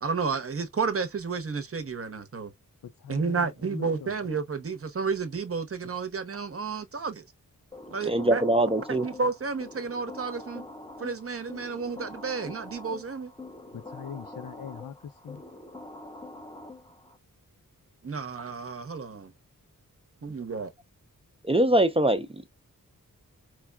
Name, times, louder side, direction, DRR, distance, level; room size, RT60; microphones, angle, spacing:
voice 1, 0.0-2.5 3.1-7.2 7.9-8.4 8.9-10.6 11.0-13.3 18.0-19.3 20.2-20.7, right 5 dB, 40° right, 0.7 m, -31 dB
voice 2, 3.0-4.2 13.7-15.4, left 8 dB, 70° left, 0.5 m, -41 dB
sound 1, 7.7-17.2, left 2 dB, 10° left, 0.8 m, -45 dB
voice 3, 8.1-9.1 21.4-22.5, right 1 dB, 15° right, 0.4 m, -23 dB
4.5 x 2.1 x 2.3 m
wide cardioid pair, 130°, 34 cm